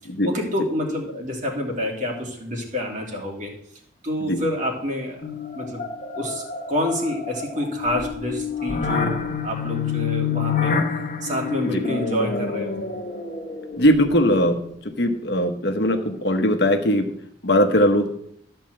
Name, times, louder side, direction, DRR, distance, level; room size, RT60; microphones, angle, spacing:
voice 1, 0.2-3.5 4.0-5.3 5.5-5.8 6.1-10.8 11.2-12.9, left 1 dB, 40° right, -1 dB, 2.5 m, -28 dB
sound 1, 5.2-14.3, left 5 dB, 40° left, 1.0 m, -28 dB
voice 2, 13.8-14.6 14.8-17.1 17.4-18.1, equal, 60° left, 5 dB, 1.2 m, -19 dB
13.0 x 4.5 x 7.6 m, 0.70 s
head